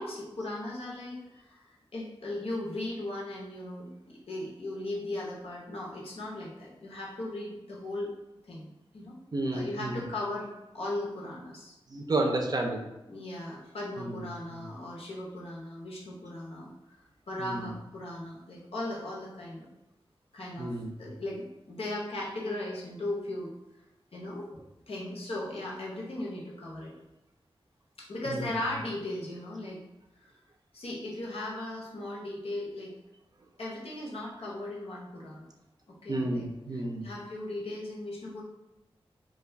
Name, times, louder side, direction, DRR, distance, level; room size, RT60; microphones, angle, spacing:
voice 1, 0.0-8.1 8.4-8.7 8.9-9.1 9.5-10.5 10.7-11.7 13.1-17.0 17.3-19.7 20.3-23.5 24.1-26.9 28.0-29.8 30.2-30.3 30.7-32.9 33.6-35.5 35.9-36.4 37.0-38.4, left 1 dB, 75° left, -4 dB, 0.8 m, -37 dB
voice 2, 9.3-10.1 11.9-12.8 14.0-14.7 17.4-17.8 20.6-21.2 28.3-28.5 36.1-37.1, right 2 dB, 40° right, 2 dB, 0.4 m, -32 dB
2.3 x 2.2 x 3.3 m, 0.96 s
wide cardioid pair, 85°, 10 cm